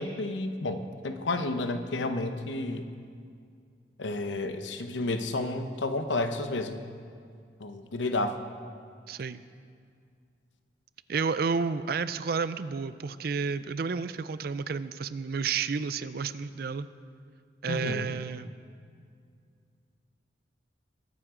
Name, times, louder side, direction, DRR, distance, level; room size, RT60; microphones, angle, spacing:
voice 1, 0.0-2.9 4.0-6.9 7.6-8.4 17.7-18.1, left 2 dB, 80° left, 8 dB, 0.9 m, -31 dB
voice 2, 9.1-9.4 11.1-16.9 17.6-18.5, right 5 dB, 50° right, 14 dB, 0.4 m, -31 dB
21.5 x 9.4 x 3.8 m, 2.2 s
head